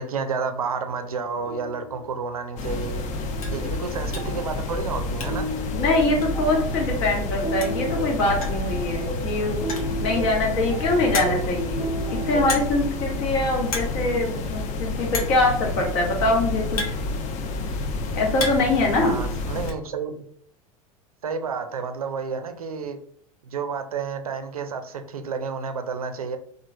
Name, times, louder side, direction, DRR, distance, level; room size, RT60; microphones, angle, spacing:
voice 1, 0.0-3.0 3.5-5.5 11.2-11.5 19.0-20.2 21.2-23.0 23.4-26.4, right 5 dB, 90° right, 7 dB, 0.4 m, -30 dB
sound 1, 0.7-12.5, right 1 dB, 5° right, 0.9 m, -35 dB
sound 2, 2.4-2.6 3.0-3.1 3.4-3.6 4.1-4.4 4.7-5.6 5.8-5.9 6.2-6.3 7.3-7.4 7.6-7.9 8.4-8.7 9.5-10.0 10.6-10.7 11.1-11.6 12.5-12.9 13.2-13.4 13.6-14.0 14.2-14.3 15.1-15.5 16.3-17.6 18.0-18.8 19.0-19.8, left 3 dB, 80° left, 0.7 m, -32 dB
sound 3, 2.6-19.7, left 2 dB, 40° left, 0.5 m, -29 dB
voice 2, 5.7-9.6 10.0-16.8 18.1-19.2, left 2 dB, 60° left, 0 dB, 1.1 m, -23 dB
2.9 x 2.4 x 2.4 m, 0.66 s
hypercardioid pair, 85°, 18 cm